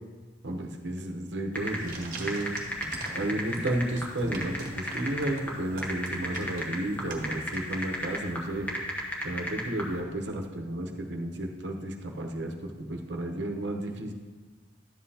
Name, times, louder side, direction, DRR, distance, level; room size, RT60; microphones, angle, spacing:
voice 1, 0.4-2.5 3.1-8.7 9.2-14.1, right 1 dB, 85° right, 3 dB, 0.9 m, -32 dB
sound 1, 1.5-9.9, equal, 10° left, 1.2 m, -34 dB
sound 2, 1.6-8.1, right 2 dB, 50° right, 1.3 m, -42 dB
12.0 x 7.8 x 2.8 m, 1.3 s
head